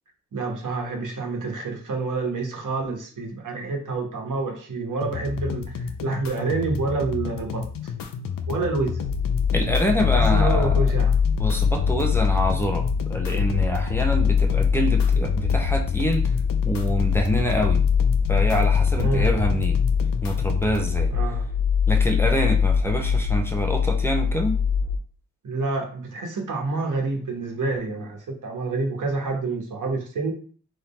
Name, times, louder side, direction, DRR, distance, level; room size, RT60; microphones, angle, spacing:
voice 1, 0.3-7.9 8.5-9.0 10.2-11.1 18.9-19.3 21.1-21.4 25.4-30.3, right 3 dB, 70° right, 1 dB, 1.3 m, -28 dB
sound 1, 5.0-21.0, left 6 dB, 85° left, 0.6 m, -32 dB
sound 2, 9.0-25.0, left 6 dB, 65° left, 1.2 m, -22 dB
voice 2, 9.5-10.8 11.4-16.3 16.6-17.8 18.3-19.8 20.2-21.1 21.9-24.6, equal, 5° left, 3 dB, 0.9 m, -26 dB
3.8 x 3.2 x 4.3 m, 0.43 s
cardioid pair, 75°, 33 cm